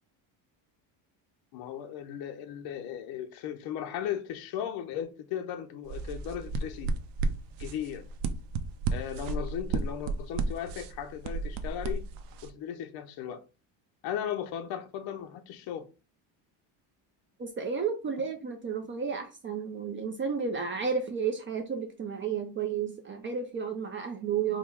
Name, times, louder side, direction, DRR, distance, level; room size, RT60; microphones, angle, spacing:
voice 1, 1.5-6.9 7.6-8.0 8.9-12.0 12.4-13.4 14.0-15.9, left 9 dB, 60° left, 0.5 m, -36 dB
sound 1, 5.9-12.5, right 3 dB, 75° right, 0.6 m, -33 dB
voice 2, 17.4-24.6, right 6 dB, 30° right, 0.4 m, -32 dB
3.6 x 2.1 x 4.4 m
cardioid pair, 160°, 43 cm